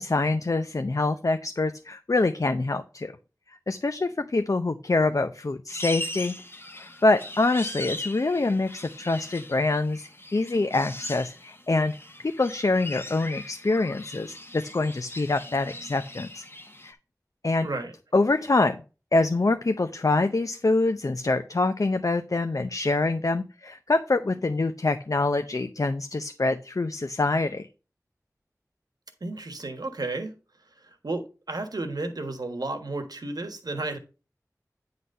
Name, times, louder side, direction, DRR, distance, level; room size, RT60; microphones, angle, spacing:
voice 1, 0.0-3.1 3.7-6.3 6.7-11.9 12.4-16.4 16.8-17.0 17.4-17.7 18.1-18.8 19.1-27.7, left 2 dB, 60° left, 8 dB, 0.6 m, -25 dB
sound 1, 5.7-16.9, left 1 dB, 35° left, 1.3 m, -40 dB
voice 2, 17.6-17.9 29.2-30.3 30.8-34.0, right 2 dB, 85° right, 7 dB, 1.4 m, -33 dB
9.4 x 4.1 x 5.3 m, 0.32 s
wide cardioid pair, 50°, 7 cm